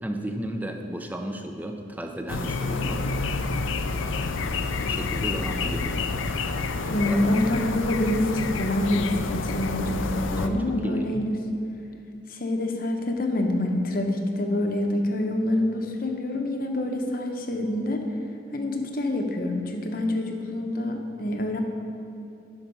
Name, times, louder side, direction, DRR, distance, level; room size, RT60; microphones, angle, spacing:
voice 1, 0.0-3.1 3.8-4.3 4.9-5.9 7.1-7.2 10.3-11.3, right 1 dB, 10° right, 4 dB, 0.5 m, -34 dB
sound 1, 2.3-10.5, left 3 dB, 85° left, 0.5 m, -28 dB
voice 2, 6.9-11.4 12.3-18.0 18.5-21.6, left 1 dB, 45° left, 3 dB, 0.8 m, -26 dB
10.0 x 6.0 x 5.4 m, 2.8 s
head